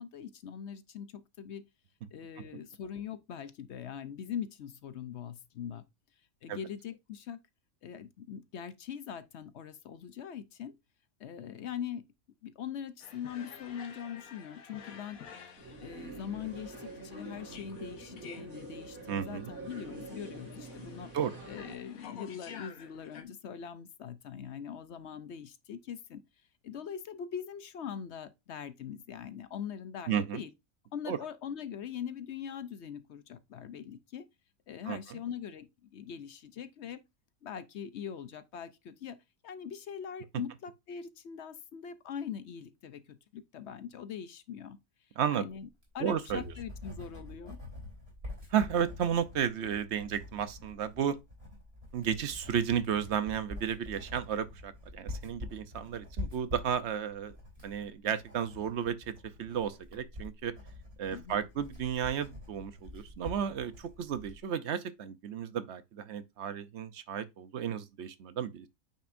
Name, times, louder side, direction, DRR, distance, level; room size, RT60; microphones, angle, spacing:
voice 1, 0.0-1.6 2.1-5.8 6.4-7.4 7.8-10.7 11.2-12.0 12.4-15.2 15.8-21.1 21.5-26.2 26.6-30.5 30.9-34.3 34.7-37.0 37.4-39.2 39.4-44.8 45.3-45.7 45.9-47.6 61.1-61.5, left 8 dB, 60° left, 0.8 m, -42 dB
sound 1, 13.0-23.2, left 7 dB, 80° left, 1.5 m, -51 dB
sound 2, 15.6-21.8, right 2 dB, 75° right, 4.7 m, -46 dB
voice 2, 19.1-19.5 21.1-21.4 30.1-30.4 31.1-31.2 34.9-35.2 45.2-45.4 46.0-46.4 48.5-51.2 51.9-57.3 57.6-59.1 59.4-60.5 61.0-68.7, right 8 dB, 60° right, 0.9 m, -33 dB
Writing, 45.7-64.4, left 2 dB, 45° right, 3.6 m, -46 dB
8.7 x 5.9 x 2.5 m
omnidirectional pair, 1.5 m